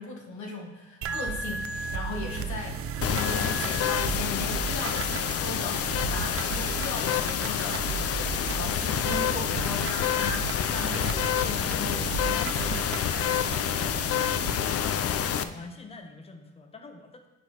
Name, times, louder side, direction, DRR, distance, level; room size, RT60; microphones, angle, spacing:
voice 1, 0.0-13.5, left 2 dB, 70° left, 0 dB, 1.4 m, -38 dB
sound 1, 1.0-14.6, right 5 dB, 50° right, 0.5 m, -35 dB
sound 2, 3.0-15.4, left 9 dB, 50° left, 0.4 m, -28 dB
voice 2, 14.5-17.3, left 3 dB, 20° left, 6 dB, 0.7 m, -45 dB
8.0 x 6.2 x 2.9 m, 1.0 s
cardioid pair, 90°, 30 cm